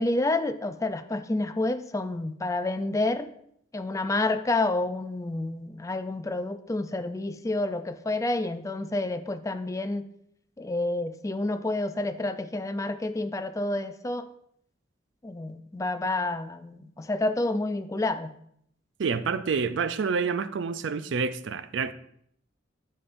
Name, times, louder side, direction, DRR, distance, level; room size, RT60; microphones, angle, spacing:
voice 1, 0.0-3.3 3.7-10.1 10.6-14.3 15.2-18.3, left 2 dB, 15° left, 0.4 m, -29 dB
voice 2, 19.0-21.9, right 5 dB, 70° right, 0.4 m, -28 dB
9.9 x 7.0 x 2.6 m
head